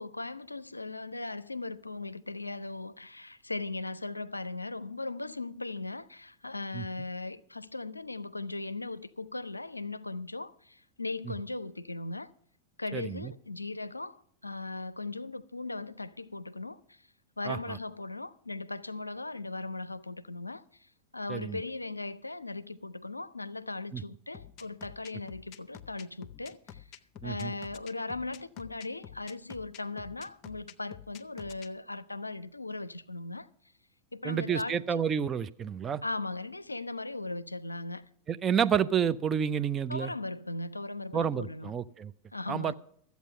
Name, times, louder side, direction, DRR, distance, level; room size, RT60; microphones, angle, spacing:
voice 1, 0.0-12.3 12.8-17.1 17.4-26.9 27.2-33.5 34.1-35.0 36.0-38.1 39.9-41.7 42.3-42.7, left 2 dB, 85° left, 0.4 m, -38 dB
voice 2, 12.9-13.3 17.5-17.6 21.3-21.6 23.9-24.0 27.2-27.5 34.2-36.0 38.3-40.1 41.1-42.1 42.5-42.7, right 8 dB, 25° right, 0.5 m, -29 dB
sound 1, 24.3-31.7, left 9 dB, 35° left, 0.6 m, -48 dB
13.5 x 8.2 x 5.5 m
figure-of-eight pair, 90°, 0 cm